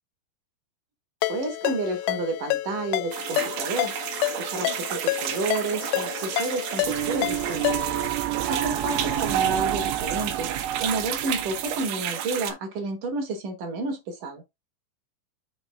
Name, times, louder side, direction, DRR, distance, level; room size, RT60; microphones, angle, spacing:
Ringtone, 1.2-8.1, left 21 dB, 85° left, 2.9 m, -29 dB
voice 1, 1.3-3.9 4.4-7.8 8.5-10.5 10.8-14.4, right 2 dB, 50° right, 3.3 m, -30 dB
sound 1, 3.1-12.5, right 10 dB, 70° right, 3.0 m, -32 dB
sound 2, 6.8-11.9, right 11 dB, 90° right, 3.2 m, -29 dB
7.1 x 3.6 x 5.9 m
omnidirectional pair, 5.5 m